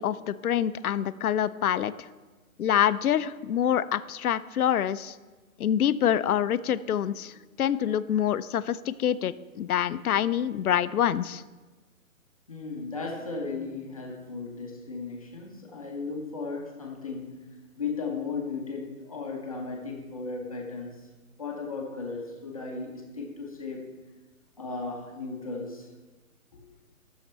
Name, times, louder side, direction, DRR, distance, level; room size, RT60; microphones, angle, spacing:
voice 1, 0.0-1.9 2.6-5.2 5.6-11.4, left 10 dB, 75° left, 15 dB, 0.5 m, -26 dB
voice 2, 12.5-21.1 21.4-23.9 24.6-25.9 26.5-26.6, left 4 dB, 25° left, -1 dB, 0.7 m, -36 dB
11.5 x 6.5 x 3.3 m, 1.2 s
hypercardioid pair, 165°, 45 cm